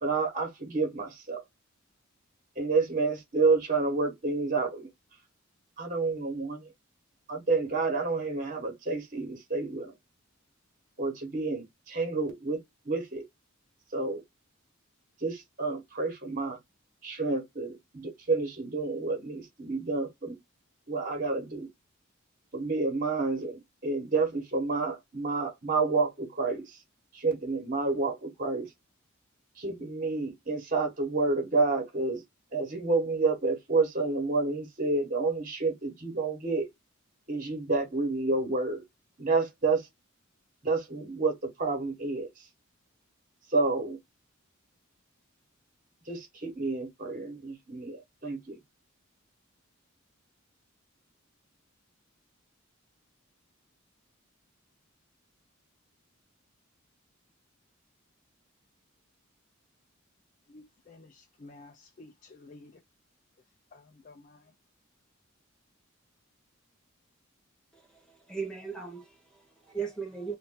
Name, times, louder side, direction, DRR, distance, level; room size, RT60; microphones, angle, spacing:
voice 1, 0.0-1.4 2.6-4.9 5.8-6.7 7.3-9.9 11.0-12.6 12.9-13.2 13.9-14.2 15.2-16.6 17.0-20.4 20.9-21.7 22.5-26.6 27.1-28.7 29.6-32.2 32.5-36.7 37.3-38.8 39.2-39.8 40.6-41.3 41.6-42.3 43.5-44.0 46.1-48.6, right 3 dB, 40° right, 1.3 m, -29 dB
voice 2, 60.5-62.8 63.7-64.4, left 2 dB, 40° left, 0.4 m, -52 dB
voice 3, 68.1-70.4, right 5 dB, 5° left, 1.1 m, -37 dB
2.6 x 2.6 x 3.7 m
head